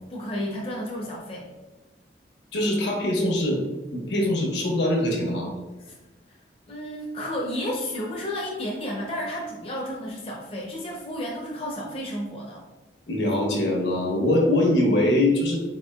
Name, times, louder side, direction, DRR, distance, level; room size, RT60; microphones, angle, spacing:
voice 1, 0.1-1.5 5.9-6.0 6.7-12.6, equal, 30° left, -3 dB, 0.5 m, -32 dB
voice 2, 2.5-3.6 3.9-5.5 13.1-15.6, left 1 dB, 75° left, 0 dB, 1.0 m, -22 dB
4.3 x 4.1 x 2.2 m, 1.2 s
head